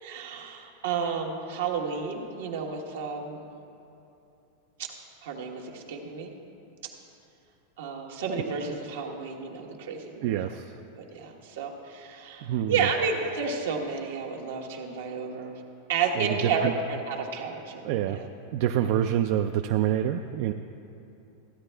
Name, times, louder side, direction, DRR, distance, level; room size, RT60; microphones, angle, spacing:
voice 1, 0.0-3.5 4.8-4.9 5.2-6.3 7.8-10.3 11.0-15.6 15.9-18.3 18.8-18.9, right 5 dB, 80° right, 1 dB, 1.3 m, -31 dB
voice 2, 10.2-10.7 12.4-12.9 16.2-16.7 17.8-18.2 18.5-20.5, right 11 dB, 60° right, 6 dB, 0.3 m, -27 dB
14.5 x 9.0 x 3.4 m, 2.8 s
supercardioid pair, 125°, 0 cm